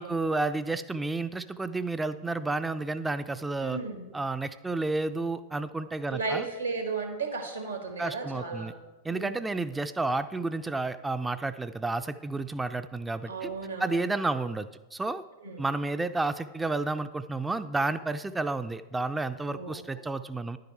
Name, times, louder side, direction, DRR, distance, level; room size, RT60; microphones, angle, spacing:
voice 1, 0.0-3.8 4.1-6.5 8.0-8.7 9.0-13.5 13.8-15.2 15.6-20.6, right 3 dB, 10° right, 11 dB, 0.3 m, -31 dB
voice 2, 3.6-4.0 6.1-8.7 9.1-9.4 13.3-14.0 15.4-15.6 19.5-20.1, right 4 dB, 80° right, 5 dB, 1.6 m, -35 dB
10.5 x 7.5 x 4.4 m, 1.2 s
figure-of-eight pair, 90°, 0 cm